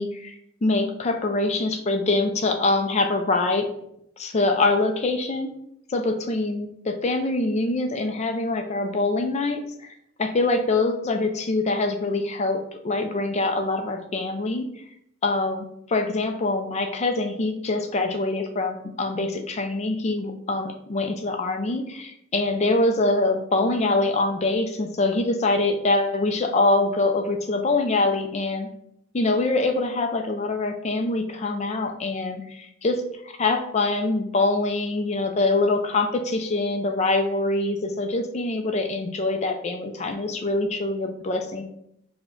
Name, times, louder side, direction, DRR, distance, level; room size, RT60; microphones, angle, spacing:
voice 1, 0.0-3.7 4.2-5.5 5.9-9.9 10.2-12.6 12.8-14.6 15.2-28.7 29.1-41.6, left 2 dB, 30° left, 5 dB, 0.4 m, -24 dB
4.7 x 2.2 x 3.7 m, 0.76 s
head